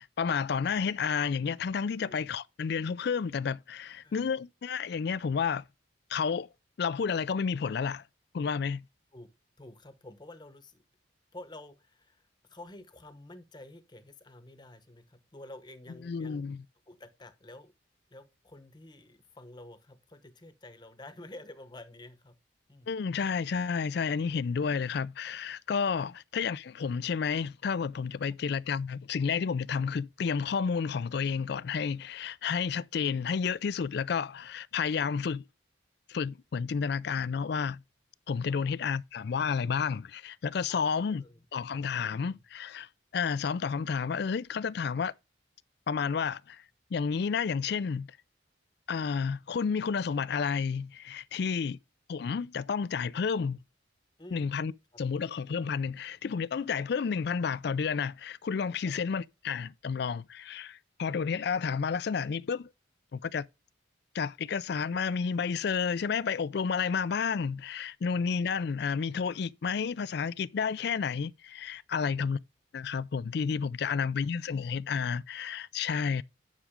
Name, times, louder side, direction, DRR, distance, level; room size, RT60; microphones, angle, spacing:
voice 1, 0.0-5.6 6.1-6.5 6.8-8.0 8.3-8.8 16.0-16.6 22.9-35.4 36.1-37.8 38.3-41.2 41.5-45.1 45.9-46.6 46.9-48.2 48.9-51.8 52.1-53.6 54.3-54.7 55.0-62.7 63.1-63.4 64.1-72.4 72.7-76.2, left 6 dB, 55° left, 0.3 m, -31 dB
voice 2, 9.6-10.8 11.3-16.4 16.9-17.7 18.1-22.4 22.7-22.9 38.5-38.7 40.7-41.4 42.0-42.4 51.3-51.7 54.2-54.5 58.8-58.9 68.1-68.3 72.0-72.4 73.8-74.1, left 1 dB, 20° left, 0.9 m, -50 dB
10.0 x 6.1 x 3.6 m
head